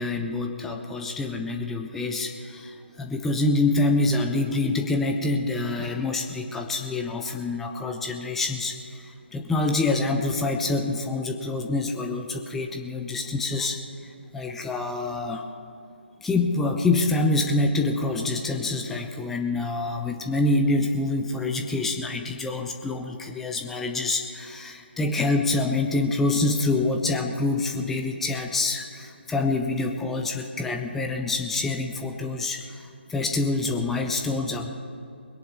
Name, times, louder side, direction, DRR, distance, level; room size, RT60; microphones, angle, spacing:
voice 1, 0.0-15.5 16.2-34.7, left 2 dB, 5° left, 3 dB, 0.4 m, -26 dB
21.0 x 10.5 x 4.3 m, 2.6 s
figure-of-eight pair, 145°, 6 cm